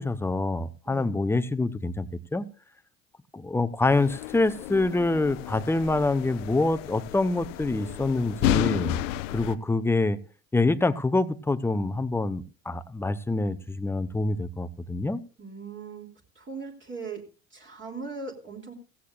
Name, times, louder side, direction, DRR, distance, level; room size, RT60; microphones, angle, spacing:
voice 1, 0.0-2.1 2.3-2.5 3.3-9.0 9.3-10.2 10.5-15.2, left 2 dB, 5° left, 13 dB, 0.8 m, -26 dB
sound 1, 3.9-9.5, left 12 dB, 60° left, 0.9 m, -32 dB
voice 2, 15.4-16.1 16.3-17.2 17.5-18.7, right 4 dB, 30° right, 1 dB, 3.1 m, -39 dB
16.0 x 16.0 x 2.5 m, 0.34 s
figure-of-eight pair, 70°, 41 cm